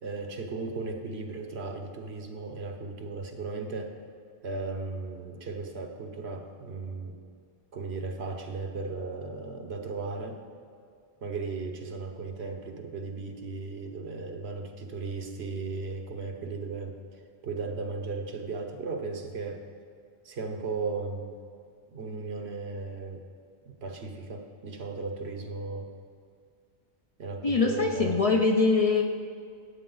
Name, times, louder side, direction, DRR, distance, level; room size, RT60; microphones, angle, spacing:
voice 1, 0.0-3.9 4.4-7.1 7.7-10.4 11.2-19.6 20.2-21.4 21.9-23.2 23.6-25.9 27.2-28.2, right 3 dB, 70° right, 4 dB, 1.2 m, -36 dB
voice 2, 27.4-29.0, left 4 dB, 40° left, 2 dB, 0.6 m, -23 dB
12.0 x 8.6 x 3.9 m, 2.3 s
omnidirectional pair, 1.1 m